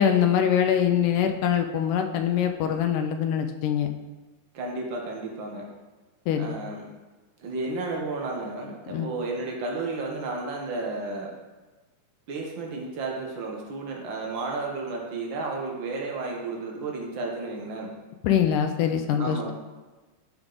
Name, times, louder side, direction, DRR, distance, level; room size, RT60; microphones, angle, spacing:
voice 1, 0.0-3.9 6.3-6.6 8.9-9.1 18.2-19.5, left 9 dB, 80° left, 6 dB, 2.1 m, -23 dB
voice 2, 4.5-5.7 6.4-6.8 7.4-11.3 12.3-17.9 19.2-19.5, right 3 dB, 90° right, -1 dB, 1.0 m, -32 dB
12.0 x 5.0 x 3.9 m, 1.2 s
omnidirectional pair, 3.8 m